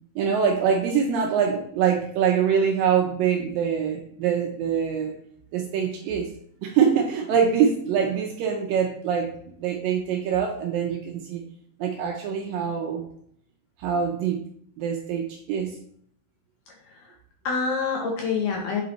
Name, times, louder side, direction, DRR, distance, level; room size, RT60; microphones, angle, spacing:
voice 1, 0.2-5.2 5.5-6.3 6.6-11.4 11.8-13.0 13.8-14.4 14.8-15.8, right 7 dB, 75° right, 1 dB, 2.1 m, -24 dB
voice 2, 16.7-17.2 17.4-18.8, left 5 dB, 70° left, 0 dB, 2.1 m, -27 dB
7.7 x 4.0 x 4.1 m, 0.64 s
omnidirectional pair, 4.6 m